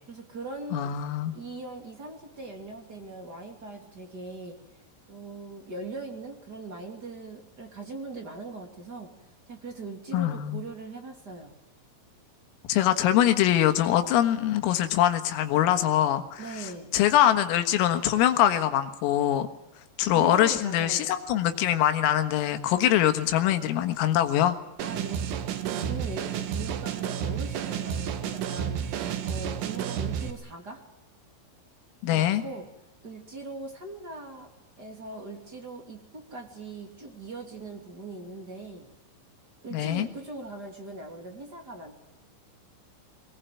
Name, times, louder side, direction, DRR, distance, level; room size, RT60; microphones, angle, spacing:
voice 1, 0.1-0.9 1.3-4.6 5.1-9.1 9.5-11.6 16.4-16.9 20.1-21.1 24.8-30.8 32.1-32.7 33.0-34.5 34.8-38.9 39.6-41.9, right 2 dB, 25° right, 3 dB, 2.4 m, -40 dB
voice 2, 0.7-1.3 10.1-10.6 12.7-19.5 20.0-24.6 32.0-32.4 39.7-40.1, left 12 dB, 85° left, 8 dB, 4.2 m, -23 dB
sound 1, 24.8-30.3, right 8 dB, 70° right, 3.8 m, -31 dB
21.5 x 19.5 x 9.3 m, 0.94 s
omnidirectional pair, 5.9 m